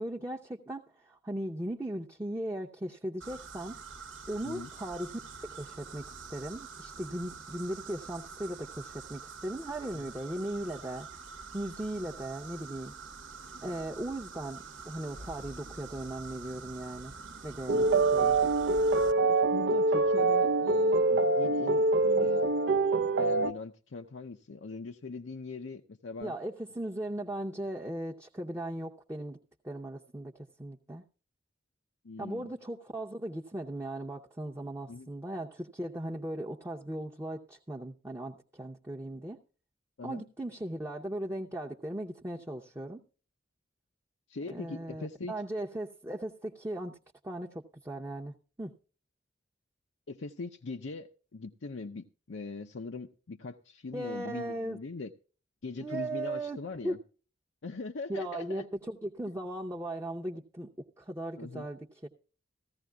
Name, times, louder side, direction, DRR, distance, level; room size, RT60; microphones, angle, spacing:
voice 1, 0.0-3.8 4.3-5.2 5.5-11.1 11.5-12.9 13.6-17.1 17.4-18.4 26.2-29.4 29.6-31.0 32.2-39.4 40.0-43.0 44.5-47.0 47.2-48.7 53.9-54.8 55.8-56.6 56.8-57.0 58.1-62.1, right 1 dB, 15° right, -1 dB, 0.7 m, -38 dB
sound 1, 3.2-19.1, right 4 dB, 85° right, 1.1 m, -46 dB
sound 2, 17.7-23.5, right 3 dB, 65° right, 0.5 m, -25 dB
voice 2, 19.3-22.4 23.2-26.4 32.0-32.5 34.9-35.1 40.0-40.2 44.3-45.3 50.1-55.1 55.6-57.0 57.6-58.7 61.4-61.7, left 3 dB, 75° left, 4 dB, 0.6 m, -41 dB
15.5 x 14.5 x 2.3 m, 0.37 s
head